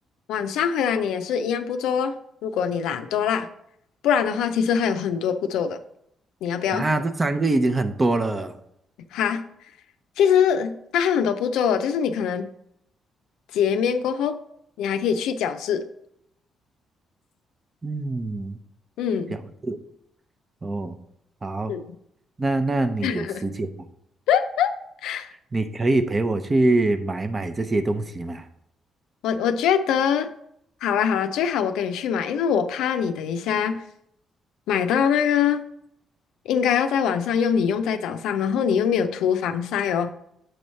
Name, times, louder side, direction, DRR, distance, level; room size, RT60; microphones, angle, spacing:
voice 1, 0.3-2.1 2.4-3.5 4.0-5.8 6.4-6.9 9.1-9.4 10.2-12.5 13.5-14.4 14.8-15.8 19.0-19.4 21.7-22.0 23.0-23.5 24.3-24.7 25.0-25.3 29.2-30.3 30.8-33.8 34.7-35.6 36.5-40.1, left 7 dB, 85° left, 9 dB, 0.4 m, -23 dB
voice 2, 6.7-8.6 17.8-18.6 19.3-19.8 20.6-21.0 21.4-21.7 22.4-23.7 25.5-28.5, right 2 dB, 25° right, 10 dB, 0.6 m, -24 dB
7.7 x 3.1 x 5.4 m, 0.75 s
cardioid pair, 90°, 0 cm